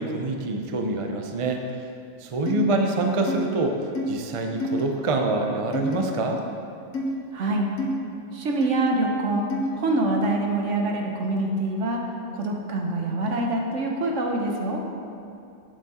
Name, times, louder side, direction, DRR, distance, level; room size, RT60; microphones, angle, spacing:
voice 1, 0.0-1.6 2.2-6.4, right 2 dB, 40° right, 3 dB, 0.5 m, -26 dB
sound 1, 2.5-2.6 3.3-3.4 4.0-4.1 4.6-4.8 5.7-6.0 6.9-7.1 7.8-7.9 8.6-8.7 9.5-9.7, left 1 dB, 85° left, 1.3 m, -27 dB
voice 2, 7.3-7.7 8.3-9.5 9.8-14.8, right 2 dB, 70° right, 1 dB, 1.3 m, -25 dB
8.1 x 7.4 x 4.2 m, 2.6 s
omnidirectional pair, 1.3 m